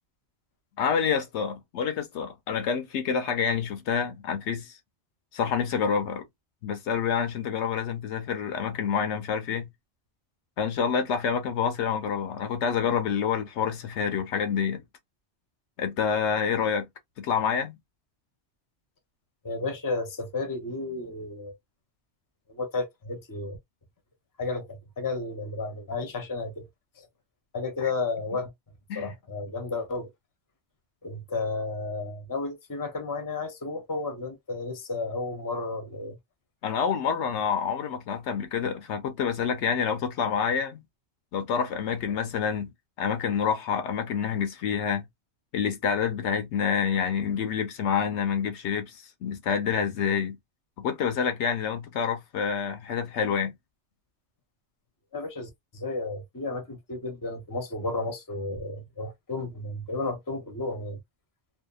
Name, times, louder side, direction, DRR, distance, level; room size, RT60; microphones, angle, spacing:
voice 1, 0.8-4.8 5.3-6.2 6.6-9.7 10.6-14.8 15.8-16.9 17.2-17.8 28.9-29.1 36.6-40.8 41.3-42.7 43.0-45.0 45.5-50.4 50.8-53.5, left 7 dB, 75° left, 0.9 m, -27 dB
voice 2, 19.4-21.5 22.5-23.6 24.4-26.7 27.0-27.1 27.5-28.5 28.9-30.1 31.0-36.2 55.1-61.0, left 3 dB, 20° left, 0.6 m, -32 dB
2.7 x 2.3 x 2.3 m
omnidirectional pair, 1.2 m